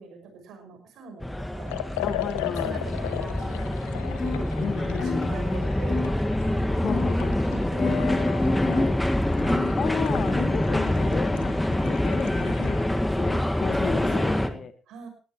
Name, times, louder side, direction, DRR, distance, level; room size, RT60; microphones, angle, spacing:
voice 1, 0.0-1.8 2.6-3.9 4.2-6.1 6.4-6.9 7.5-8.6 13.3-13.4 13.7-15.1, right 4 dB, 60° right, 5 dB, 6.1 m, -43 dB
sound 1, 1.2-14.5, left 1 dB, 5° left, 1.8 m, -26 dB
Liquid, 1.7-12.9, left 13 dB, 75° left, 1.1 m, -38 dB
voice 2, 2.0-3.0 4.6-5.4 6.7-7.4 7.8-9.0 9.7-14.7, left 7 dB, 45° left, 12 dB, 1.2 m, -33 dB
sound 2, 4.2-4.5 5.0-5.3 5.9-6.1 6.9-7.2 7.8-8.0 8.6-8.9 9.5-9.8 10.3-10.6, left 4 dB, 30° left, 5.2 m, -31 dB
19.5 x 14.5 x 3.1 m, 0.37 s
figure-of-eight pair, 50°, 0 cm